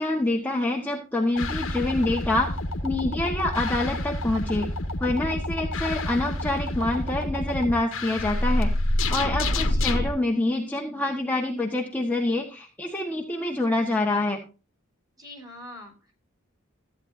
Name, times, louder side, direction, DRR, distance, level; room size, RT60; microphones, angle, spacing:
voice 1, 0.0-2.5 2.8-4.7 5.0-8.7 9.1-14.4, left 2 dB, 10° left, 0 dB, 1.3 m, -26 dB
sound 1, 1.4-10.1, left 1 dB, 70° left, 1.5 m, -28 dB
voice 2, 9.5-10.1 15.2-16.1, equal, 20° right, 3 dB, 3.7 m, -43 dB
14.5 x 9.5 x 2.6 m, 0.33 s
head